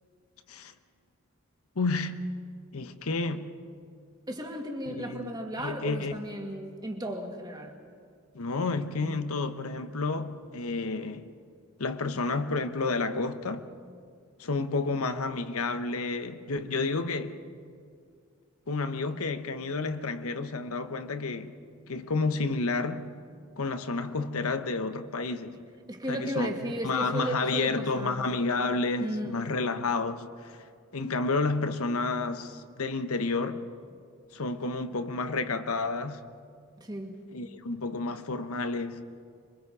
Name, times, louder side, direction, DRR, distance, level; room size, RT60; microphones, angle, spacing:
voice 1, 1.8-2.2 2.7-3.5 4.9-5.3 5.6-6.1 8.3-11.4 11.8-13.7 14.4-17.4 18.7-21.5 21.9-23.1 23.6-25.6 26.1-26.5 26.8-30.6 30.9-33.6 34.3-36.2 37.3-39.0, left 3 dB, 85° left, 1.0 m, -30 dB
voice 2, 4.3-7.8 25.9-28.3 29.0-29.4 36.8-37.3, right 1 dB, 20° right, 1.9 m, -35 dB
26.0 x 23.5 x 4.9 m
head